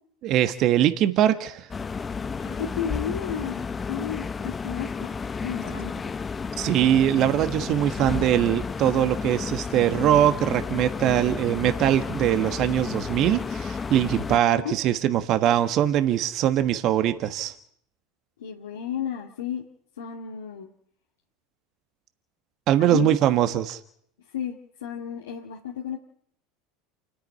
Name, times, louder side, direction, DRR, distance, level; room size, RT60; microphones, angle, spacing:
voice 1, 0.2-1.7 6.6-17.5 22.7-23.8, right 11 dB, 50° right, 10 dB, 1.4 m, -22 dB
sound 1, 1.7-14.4, left 5 dB, 25° left, 1.0 m, -32 dB
voice 2, 2.4-6.1 14.4-14.8 18.4-19.6 20.0-20.7 22.8-23.1 24.3-26.0, left 8 dB, 80° left, -1 dB, 2.1 m, -33 dB
28.5 x 10.0 x 9.8 m, 0.67 s
hypercardioid pair, 85°, 0 cm